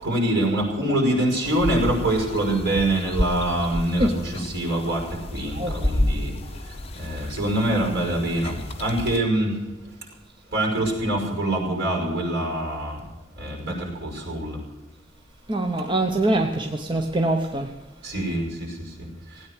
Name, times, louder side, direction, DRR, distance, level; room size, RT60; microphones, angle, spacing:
voice 1, 0.0-5.0 5.3-6.3 7.0-9.5 10.5-13.0 13.4-14.6 18.0-18.7, right 1 dB, 55° right, 0 dB, 6.1 m, -24 dB
sound 1, 1.4-9.2, left 1 dB, 30° left, 1.6 m, -30 dB
voice 2, 5.5-5.9 15.5-17.7, right 1 dB, 25° right, 4 dB, 0.9 m, -23 dB
17.5 x 9.5 x 8.3 m, 1.1 s
head